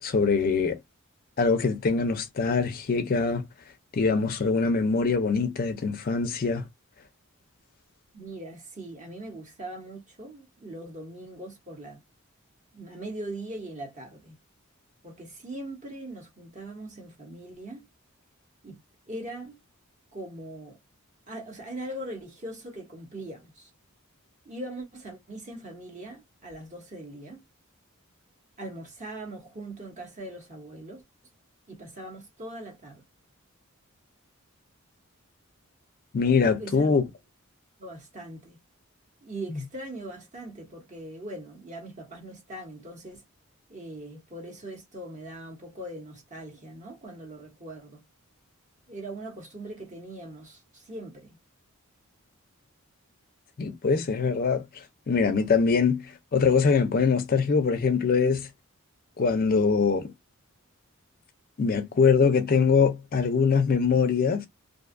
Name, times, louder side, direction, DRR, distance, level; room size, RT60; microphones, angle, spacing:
voice 1, 0.0-0.8 1.4-3.4 3.9-6.6 36.1-37.0 53.6-58.5 59.2-60.1 61.6-64.5, left 5 dB, 40° left, 0.4 m, -23 dB
voice 2, 8.1-12.0 12.7-14.3 15.0-17.9 18.6-18.8 19.1-19.6 20.1-20.8 21.3-23.7 24.4-27.4 28.6-31.0 31.7-33.0 36.6-37.0 37.8-38.6 39.2-43.2 43.7-48.0 48.9-51.4, right 1 dB, 35° right, 0.9 m, -41 dB
2.6 x 2.2 x 2.4 m
head